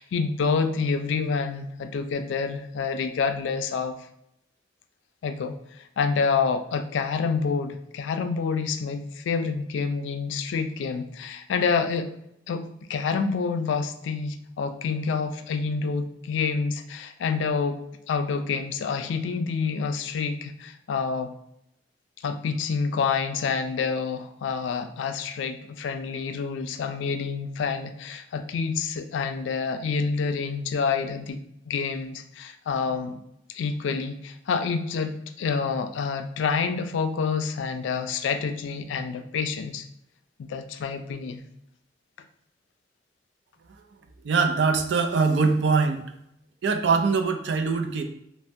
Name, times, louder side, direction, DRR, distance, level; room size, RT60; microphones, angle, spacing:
voice 1, 0.0-4.0 5.2-12.1 12.5-17.8 18.1-21.3 22.2-31.4 31.7-33.2 33.5-39.8 40.4-41.4, left 5 dB, 85° left, 8 dB, 0.3 m, -28 dB
voice 2, 44.2-46.0 46.6-48.0, right 4 dB, 70° right, 5 dB, 0.4 m, -22 dB
3.2 x 2.1 x 2.6 m, 0.77 s
head